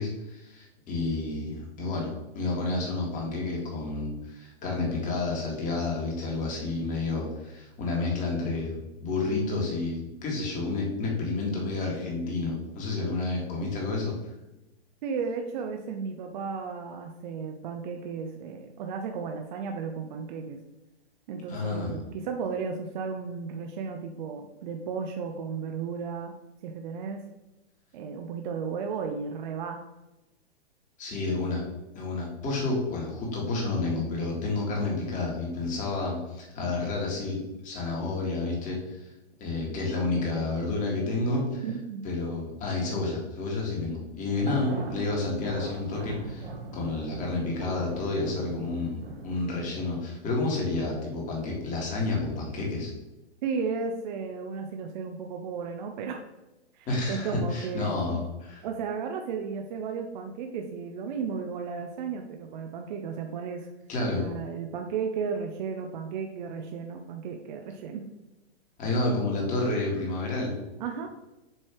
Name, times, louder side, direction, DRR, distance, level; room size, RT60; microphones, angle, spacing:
voice 1, 0.0-14.1 21.5-22.0 31.0-31.6 32.0-39.1 39.4-41.6 42.0-52.9 56.9-58.7 63.9-64.2 68.8-70.5, left 3 dB, 25° left, -1 dB, 1.9 m, -30 dB
voice 2, 15.0-20.6 21.3-26.3 26.6-27.2 27.9-29.8 41.6-42.0 53.4-56.2 56.7-58.0 58.6-63.7 64.1-68.0 70.8-71.1, right 5 dB, 45° right, 4 dB, 0.6 m, -34 dB
sound 1, 44.3-49.5, right 3 dB, 65° right, 1.3 m, -39 dB
7.6 x 3.1 x 4.5 m, 0.98 s
hypercardioid pair, 135°, 33 cm